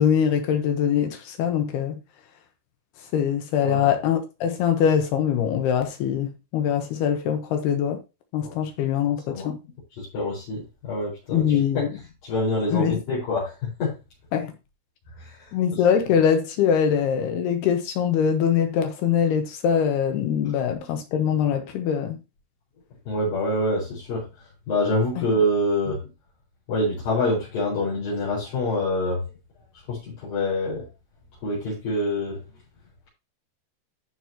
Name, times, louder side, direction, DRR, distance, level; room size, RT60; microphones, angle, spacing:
voice 1, 0.0-2.0 3.1-8.0 8.3-9.6 11.3-12.0 12.7-13.0 14.3-14.5 15.5-22.2 25.2-25.3, left 8 dB, 75° left, 3.0 m, -23 dB
voice 2, 10.1-11.8 12.2-14.0 15.2-15.4 23.1-24.3 24.7-26.0 26.7-29.2 29.9-30.9 31.4-32.4, left 1 dB, 55° left, 6.2 m, -26 dB
14.0 x 6.1 x 2.9 m
omnidirectional pair, 5.0 m